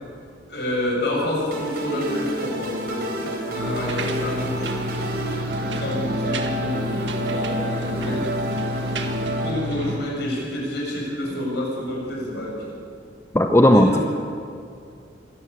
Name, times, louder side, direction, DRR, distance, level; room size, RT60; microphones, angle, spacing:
voice 1, 0.5-5.2 5.7-8.3 9.4-12.7 13.7-14.0, left 1 dB, 65° left, -3 dB, 7.4 m, -28 dB
sound 1, 1.5-9.5, right 1 dB, 60° right, 3.7 m, -29 dB
sound 2, 3.6-10.0, equal, 80° right, 1.9 m, -29 dB
voice 2, 13.3-14.0, left 1 dB, 15° left, 5 dB, 0.8 m, -15 dB
23.5 x 13.5 x 9.1 m, 2.4 s
head